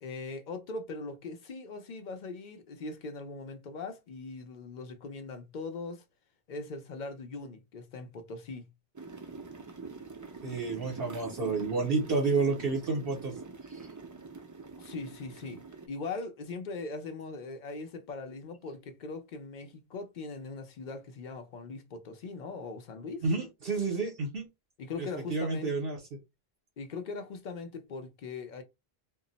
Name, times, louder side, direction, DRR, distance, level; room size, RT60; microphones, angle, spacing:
voice 1, 0.0-6.0 6.5-8.7 14.8-23.2 24.8-25.7 26.8-28.6, left 3 dB, 55° left, 0.7 m, -40 dB
sound 1, 8.9-15.9, right 4 dB, 35° right, 0.3 m, -45 dB
voice 2, 10.4-13.3 13.7-13.8 23.2-24.5 25.0-26.0, right 4 dB, 70° right, 0.9 m, -30 dB
2.2 x 2.0 x 3.8 m
omnidirectional pair, 1.0 m